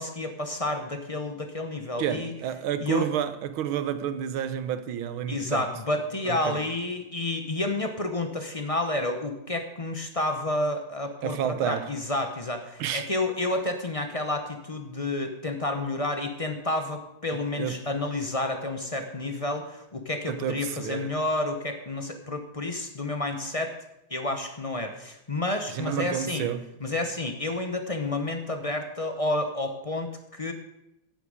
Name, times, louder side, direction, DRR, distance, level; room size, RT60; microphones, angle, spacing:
voice 1, 0.0-2.3 2.8-3.1 5.3-23.8 24.1-26.4 26.8-30.5, left 2 dB, 35° left, 0.6 m, -30 dB
voice 2, 2.0-5.7 6.3-6.6 11.2-11.9 12.8-13.1 17.6-17.9 20.3-21.1 25.7-26.7, right 9 dB, 85° right, 1.7 m, -30 dB
15.5 x 9.4 x 5.0 m
omnidirectional pair, 2.3 m